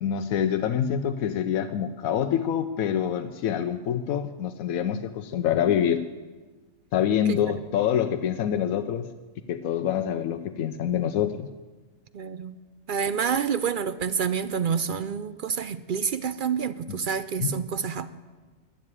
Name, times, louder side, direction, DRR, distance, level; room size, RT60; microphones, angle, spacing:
voice 1, 0.0-6.0 6.9-9.1 9.5-11.5 16.9-17.0 17.4-17.5, left 9 dB, 85° left, 8 dB, 1.1 m, -26 dB
voice 2, 12.1-12.6 12.9-18.1, right 7 dB, 60° right, 14 dB, 0.5 m, -28 dB
12.0 x 11.0 x 9.9 m, 1.3 s
omnidirectional pair, 1.4 m